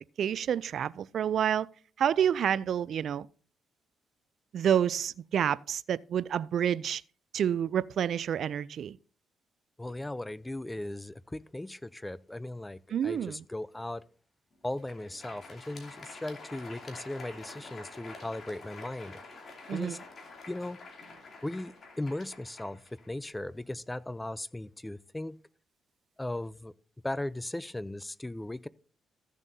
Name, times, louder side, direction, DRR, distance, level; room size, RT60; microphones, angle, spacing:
voice 1, 0.2-1.7 2.0-3.3 4.5-7.0 7.3-9.0 12.9-13.4 19.7-20.0, right 9 dB, 65° right, 0.3 m, -28 dB
voice 2, 9.8-14.0 14.6-19.2 19.7-20.0 20.5-20.8 21.4-25.4 26.2-26.7 27.0-28.7, left 1 dB, 10° left, 0.5 m, -37 dB
Crowd, 14.6-23.6, left 3 dB, 50° left, 2.7 m, -48 dB
15.0 x 7.2 x 2.7 m
cardioid pair, 90°, 0 cm